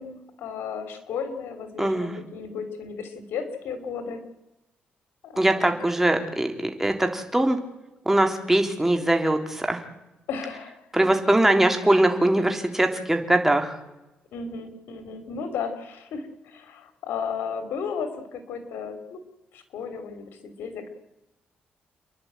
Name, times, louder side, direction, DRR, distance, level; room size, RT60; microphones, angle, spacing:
voice 1, 0.0-4.2 5.2-5.7 10.3-10.8 14.3-19.2 19.5-20.9, left 6 dB, 90° left, 9 dB, 3.2 m, -34 dB
voice 2, 1.8-2.2 5.4-7.6 8.0-9.8 10.9-13.8, right 1 dB, 10° right, 5 dB, 3.3 m, -22 dB
29.5 x 11.0 x 9.0 m, 0.97 s
cardioid pair, 95°, 4 cm